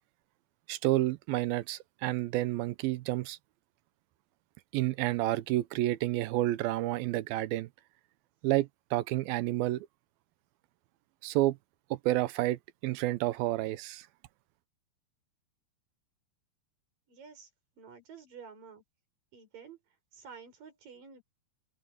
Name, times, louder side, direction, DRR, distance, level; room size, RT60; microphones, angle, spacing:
voice 1, 0.7-3.4 4.7-7.7 8.4-9.9 11.2-11.6 11.9-14.1, right 16 dB, 90° right, 2.6 m, -30 dB
voice 2, 17.1-17.5 17.8-18.8 19.3-19.8 20.1-21.2, right 6 dB, 65° right, 7.9 m, -50 dB
omnidirectional pair, 4.2 m